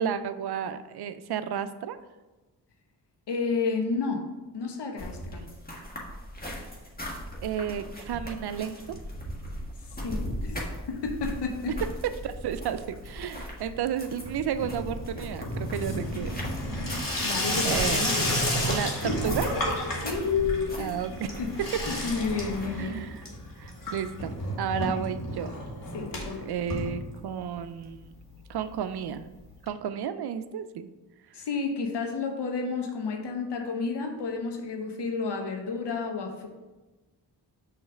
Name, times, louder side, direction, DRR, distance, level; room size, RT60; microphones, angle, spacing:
voice 1, 0.0-2.0 7.4-9.0 12.2-16.4 17.6-18.0 18.6-19.5 20.8-21.4 22.8-23.2 23.6-25.6 26.4-28.1 28.5-29.3 29.7-30.9, right 8 dB, 65° right, 12 dB, 0.5 m, -32 dB
voice 2, 3.3-4.3 4.5-5.4 10.0-10.6 10.9-11.8 17.2-18.3 19.9-21.0 21.4-23.0 24.8-25.0 25.9-26.5 31.3-36.5, left 4 dB, 75° left, 3 dB, 1.0 m, -31 dB
sound 1, 5.0-22.7, equal, 20° left, 1.6 m, -38 dB
Water tap faucet / Sink (filling or washing), 10.4-11.2 11.5-12.0 12.3-27.6 27.9-28.0 28.2-28.3 28.5-28.6 29.7-29.8, left 1 dB, 50° left, 2.0 m, -32 dB
6.1 x 3.2 x 4.9 m, 1.2 s
cardioid pair, 45°, 42 cm